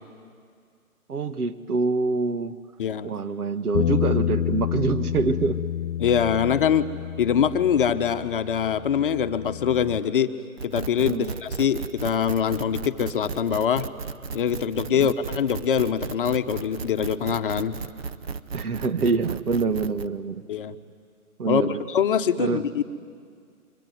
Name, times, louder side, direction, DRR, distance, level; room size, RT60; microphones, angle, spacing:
voice 1, 1.1-2.6 3.0-5.6 11.1-11.3 14.9-15.1 18.5-20.4 21.4-21.8 22.4-22.6, right 4 dB, 80° right, 12 dB, 1.4 m, -25 dB
voice 2, 2.8-3.1 6.0-6.9 7.2-10.3 10.6-13.9 14.3-17.8 20.5-20.8 21.5-21.6 21.9-22.8, left 8 dB, 35° left, 9 dB, 1.0 m, -23 dB
Bass guitar, 3.7-10.0, left 10 dB, 70° left, 0.7 m, -29 dB
sound 1, 10.6-20.1, right 5 dB, 45° right, 0.9 m, -35 dB
26.5 x 23.5 x 9.3 m, 2.1 s
hypercardioid pair, 145°, 44 cm